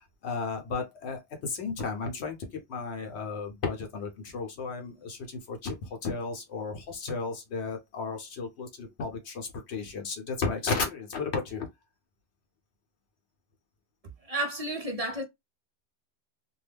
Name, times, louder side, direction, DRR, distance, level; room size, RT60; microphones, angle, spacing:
voice 1, 0.0-2.4 2.7-11.7, left 4 dB, 70° left, 1.0 m, -34 dB
voice 2, 14.2-15.2, right 1 dB, 40° right, 0.6 m, -31 dB
2.6 x 2.3 x 3.3 m
omnidirectional pair, 1.2 m